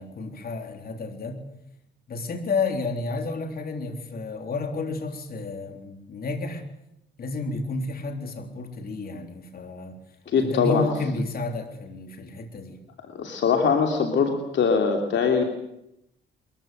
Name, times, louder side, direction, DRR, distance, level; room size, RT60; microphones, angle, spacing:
voice 1, 0.0-1.4 2.1-6.6 7.2-10.0 10.4-12.8, left 3 dB, 50° left, 5 dB, 3.6 m, -31 dB
voice 2, 10.3-10.8 13.1-15.4, left 5 dB, 65° left, 3 dB, 3.0 m, -22 dB
22.5 x 14.5 x 9.2 m, 0.84 s
cardioid pair, 90°, 20 cm